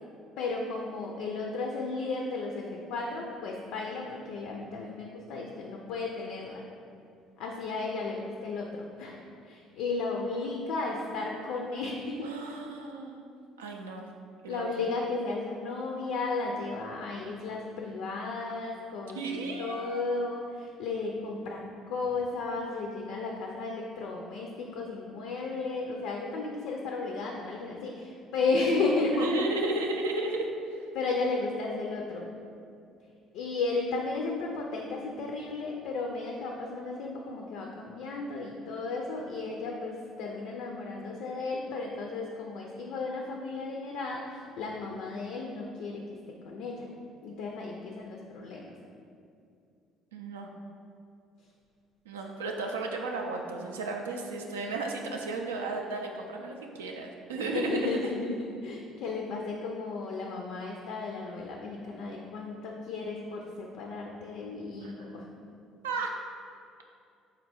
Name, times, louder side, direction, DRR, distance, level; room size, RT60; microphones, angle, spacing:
voice 1, 0.4-6.6 7.4-9.2 9.4-12.3 14.5-29.3 30.9-32.3 33.3-46.0 46.5-46.9 47.2-48.7 57.4-65.3, left 3 dB, 70° left, 0 dB, 0.3 m, -34 dB
voice 2, 12.2-13.2 13.6-14.0 14.4-14.8 19.1-20.0 29.1-30.5 50.1-50.5 52.1-57.9 64.8-64.9 65.8-66.1, right 3 dB, 85° right, 1 dB, 0.3 m, -34 dB
3.8 x 2.2 x 4.2 m, 2.5 s
hypercardioid pair, 55°, 0 cm